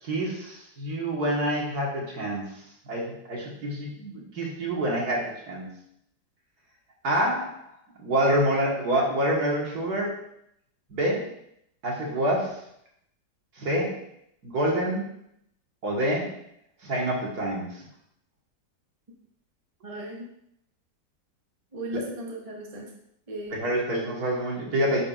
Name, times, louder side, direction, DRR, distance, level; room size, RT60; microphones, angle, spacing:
voice 1, 0.0-2.5 2.9-5.7 7.0-7.7 8.0-10.2 10.9-11.3 11.8-12.6 13.6-14.0 14.4-15.1 15.8-16.3 16.8-17.7 23.5-25.0, right 1 dB, 60° right, -3 dB, 2.1 m, -27 dB
voice 2, 19.8-20.3 21.7-22.9 23.3-23.6 24.0-24.1, equal, 25° right, -1 dB, 0.9 m, -36 dB
10.0 x 5.0 x 2.5 m, 0.74 s
omnidirectional pair, 1.9 m